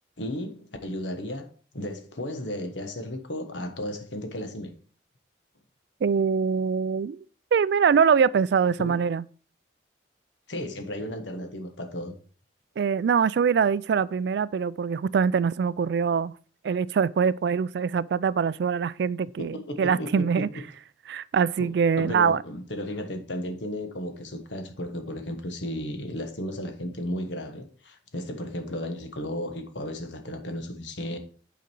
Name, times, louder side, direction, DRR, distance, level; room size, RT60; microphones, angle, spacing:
voice 1, 0.2-1.5 1.7-4.7 8.8-9.0 10.5-12.1 19.5-20.5 21.6-21.7 22.0-31.2, left 1 dB, 80° left, 1.3 m, -34 dB
voice 2, 6.0-7.2 7.5-9.2 12.8-16.3 16.6-20.5 21.1-22.4, right 6 dB, 65° right, 0.3 m, -23 dB
8.4 x 5.1 x 4.5 m
head